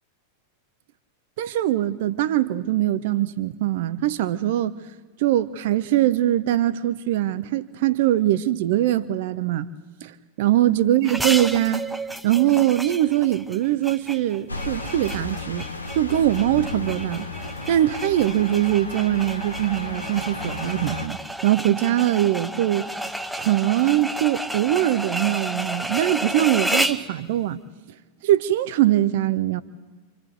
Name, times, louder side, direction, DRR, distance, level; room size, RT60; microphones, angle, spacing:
voice 1, 1.4-4.8 5.2-9.7 10.0-11.8 12.2-15.7 15.9-17.3 17.7-21.2 21.4-23.0 23.4-27.6 28.2-29.6, right 13 dB, 50° right, 0.7 m, -22 dB
sound 1, 11.0-27.1, right 1 dB, ahead, 0.8 m, -31 dB
sound 2, 14.5-21.1, left 2 dB, 80° left, 1.2 m, -34 dB
28.5 x 25.5 x 3.9 m
figure-of-eight pair, 90°, 0 cm